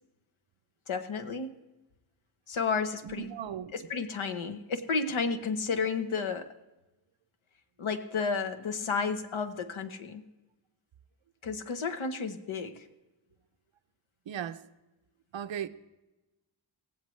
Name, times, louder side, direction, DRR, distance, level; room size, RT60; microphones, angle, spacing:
voice 1, 0.9-1.5 2.5-3.3 3.7-6.5 7.8-10.2 11.4-12.8, left 5 dB, 80° left, 1.2 m, -32 dB
voice 2, 3.0-3.7 14.3-14.7 15.3-15.7, right 9 dB, 70° right, 0.7 m, -37 dB
17.5 x 15.5 x 3.2 m
wide cardioid pair, 165°, 47 cm